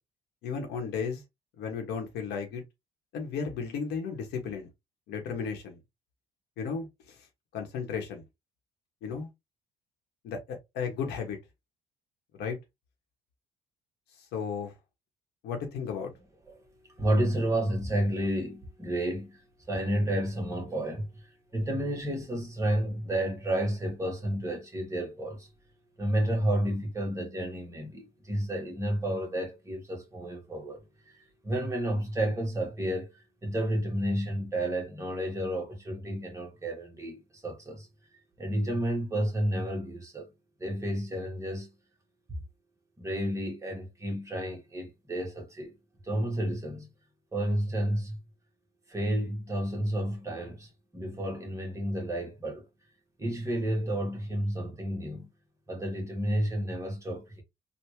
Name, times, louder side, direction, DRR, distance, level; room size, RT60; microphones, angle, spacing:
voice 1, 0.4-1.2 1.6-2.6 3.1-4.7 5.1-5.8 6.6-7.3 7.5-8.2 9.0-9.3 10.2-11.4 12.3-12.6 14.3-14.7 15.4-16.1, left 6 dB, 80° left, 1.2 m, -34 dB
voice 2, 17.0-25.5 26.0-30.8 31.1-37.9 38.4-40.3 40.6-41.7 43.0-45.7 46.0-46.9 47.3-48.2 48.9-52.6 53.2-55.3 55.7-57.4, right 1 dB, 20° right, 1.3 m, -31 dB
3.5 x 2.4 x 2.9 m
cardioid pair, 110°, 17 cm